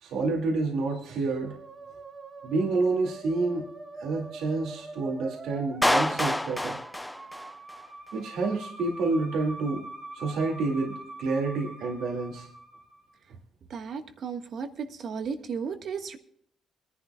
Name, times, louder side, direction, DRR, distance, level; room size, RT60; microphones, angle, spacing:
voice 1, 0.0-1.5 2.4-3.6 4.0-6.8 8.1-9.8 10.1-12.5, right 3 dB, 85° right, 1 dB, 2.2 m, -28 dB
Musical instrument, 1.3-13.1, right 2 dB, 35° right, 1.6 m, -44 dB
Clapping, 5.8-7.8, left 1 dB, 5° left, 0.4 m, -27 dB
voice 2, 13.7-16.2, right 6 dB, 60° right, 7 dB, 1.4 m, -34 dB
23.0 x 11.0 x 2.3 m, 0.66 s
cardioid pair, 90°, 0 cm